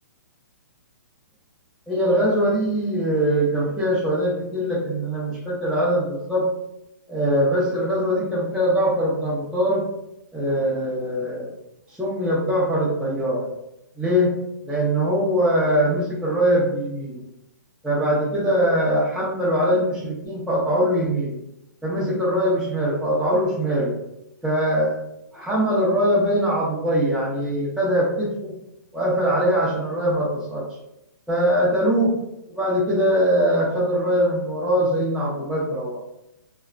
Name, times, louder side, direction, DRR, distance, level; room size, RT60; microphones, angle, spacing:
voice 1, 1.9-6.5 7.1-9.8 10.3-11.5 12.0-13.4 14.0-14.3 14.7-17.2 17.8-21.4 21.8-23.9 24.4-25.0 25.3-28.5 28.9-30.6 31.3-32.1 32.5-36.0, equal, ahead, -9 dB, 0.5 m, -22 dB
2.4 x 2.0 x 3.2 m, 0.84 s
hypercardioid pair, 150°, 10 cm